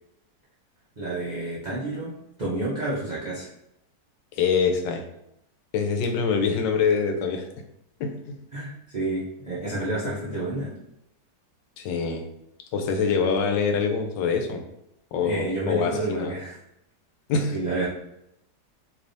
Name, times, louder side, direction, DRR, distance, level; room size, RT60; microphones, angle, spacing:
voice 1, 1.0-2.1 2.4-3.5 6.6-6.7 8.5-10.7 15.2-16.6 17.5-17.9, right 2 dB, 55° right, -8 dB, 0.4 m, -29 dB
voice 2, 4.3-5.0 5.7-7.5 8.0-8.4 11.8-12.2 12.7-14.6 15.1-16.3 17.3-17.6, left 5 dB, 85° left, 5 dB, 1.3 m, -24 dB
3.3 x 3.0 x 2.6 m, 0.80 s
omnidirectional pair, 1.9 m